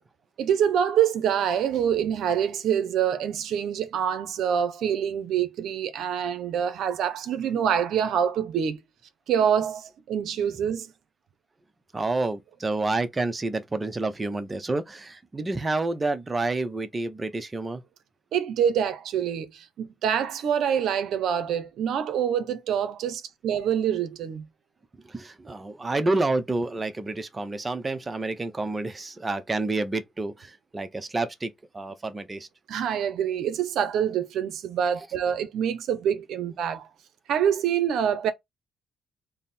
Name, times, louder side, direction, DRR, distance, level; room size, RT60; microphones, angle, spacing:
voice 1, 0.4-8.8 9.3-10.9 18.3-24.5 32.7-36.9 37.3-38.3, right 8 dB, 75° right, 0.6 m, -26 dB
voice 2, 11.9-17.8 25.0-32.5, right 2 dB, 25° right, 0.6 m, -29 dB
3.5 x 2.1 x 4.1 m
cardioid pair, 90°, 0 cm